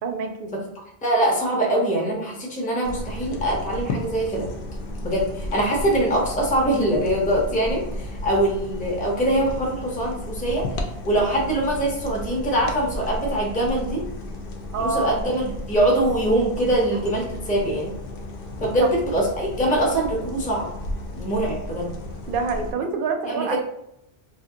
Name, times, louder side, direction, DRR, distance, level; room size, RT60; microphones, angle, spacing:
voice 1, 0.0-0.5 14.7-15.2 18.8-18.9 22.3-23.6, right 4 dB, 60° right, 4 dB, 0.6 m, -26 dB
voice 2, 1.0-4.5 5.0-10.7 11.0-14.1 14.8-17.9 18.6-20.7 21.1-21.9 23.2-23.6, right 1 dB, 10° left, -2 dB, 0.6 m, -23 dB
sound 1, 2.8-22.7, left 1 dB, 65° left, 0.7 m, -33 dB
2.6 x 2.1 x 3.7 m, 0.79 s
omnidirectional pair, 1.1 m